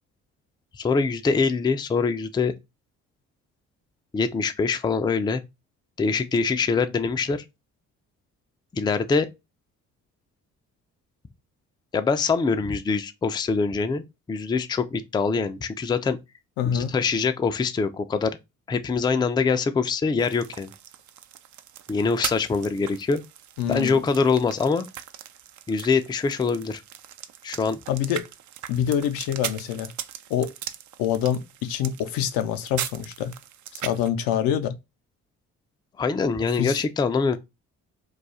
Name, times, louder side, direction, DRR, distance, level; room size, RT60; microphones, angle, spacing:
voice 1, 0.7-2.5 4.1-5.4 6.0-7.4 8.7-9.3 11.9-16.2 16.7-18.4 18.7-20.7 21.9-23.2 23.7-24.9 25.7-26.8 27.4-27.8 36.0-37.4, left 4 dB, 15° left, 0.4 m, -24 dB
voice 2, 16.6-16.9 23.6-24.0 27.9-28.2 28.7-29.9 30.3-30.5 31.0-33.3 33.7-34.8 36.6-36.8, left 9 dB, 70° left, 0.5 m, -25 dB
sound 1, 20.2-34.1, right 11 dB, 55° right, 0.4 m, -39 dB
2.4 x 2.3 x 4.0 m
hypercardioid pair, 50°, 36 cm